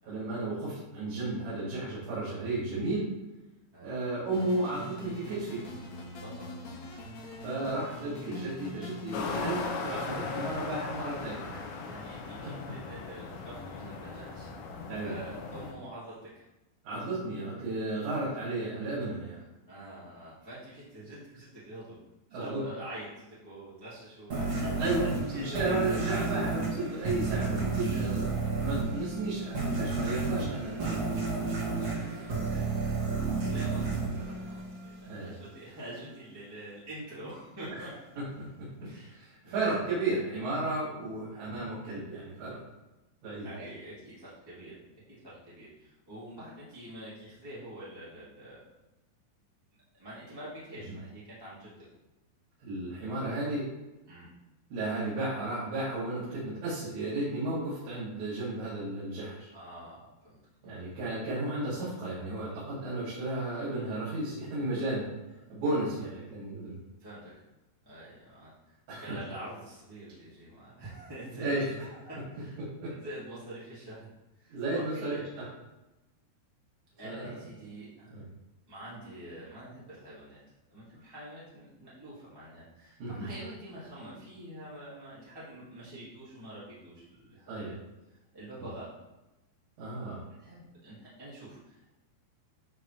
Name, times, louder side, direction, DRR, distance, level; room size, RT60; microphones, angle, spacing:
voice 1, 0.1-3.1 3.8-5.6 7.4-11.6 12.4-12.5 14.9-15.2 16.8-19.4 22.3-22.7 24.8-25.0 25.3-31.3 32.5-32.7 35.0-35.3 38.2-42.6 43.2-43.5 52.6-53.7 54.7-59.5 60.6-65.1 65.5-66.8 68.9-69.2 71.4-71.7 72.6-73.0 74.5-75.5 77.0-77.4 78.1-78.2 83.0-83.3 87.5-87.8 89.8-90.2, right 2 dB, 80° right, -10 dB, 5.0 m, -34 dB
sound 1, 4.3-9.6, left 2 dB, 60° left, 2.1 m, -43 dB
voice 2, 6.2-6.7 11.8-14.5 14.9-16.4 19.7-22.0 22.3-24.9 25.3-25.8 31.8-32.0 32.7-38.3 38.8-39.8 43.4-48.6 49.9-51.7 54.1-54.3 59.5-60.4 60.6-60.7 67.0-67.3 67.8-68.7 69.0-74.1 74.4-75.3 77.0-78.1 78.7-80.4 80.7-87.7 88.3-89.0 90.3-91.9, right 1 dB, 10° right, -10 dB, 1.4 m, -46 dB
sound 2, 9.1-15.7, left 4 dB, 85° left, 3.1 m, -38 dB
sound 3, 24.3-35.1, right 3 dB, 40° right, 2.8 m, -31 dB
11.5 x 4.1 x 3.4 m, 1.0 s
omnidirectional pair, 5.0 m